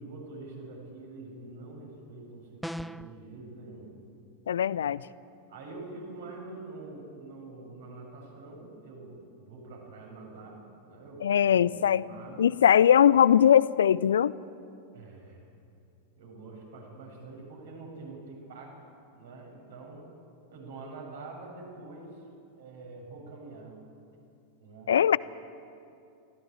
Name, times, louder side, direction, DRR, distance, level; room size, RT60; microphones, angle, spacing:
voice 1, 0.0-4.0 5.5-12.5 14.9-15.5 16.2-18.7 19.1-20.1 20.5-22.2 22.6-23.8 24.6-24.9, right 3 dB, 60° right, 0 dB, 7.3 m, -45 dB
sound 1, 2.6-3.2, equal, ahead, 0.5 m, -37 dB
voice 2, 4.5-5.0 11.2-12.0 12.4-14.3 24.9-25.2, left 9 dB, 65° left, 20 dB, 0.5 m, -21 dB
23.5 x 16.5 x 8.9 m, 2.6 s
figure-of-eight pair, 90°, 0 cm